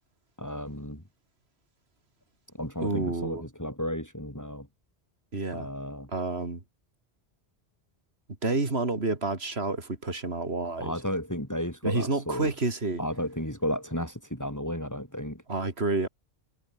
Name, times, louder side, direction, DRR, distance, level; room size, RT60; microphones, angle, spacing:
voice 1, 0.4-1.0 2.6-4.6 5.5-6.1 10.8-12.5 13.0-15.4, equal, 15° left, 6.2 m, -33 dB
voice 2, 2.8-3.5 5.3-5.7 6.1-6.6 8.4-10.9 11.8-13.0 15.5-16.1, right 3 dB, 70° right, 3.5 m, -29 dB
omnidirectional pair, 1.1 m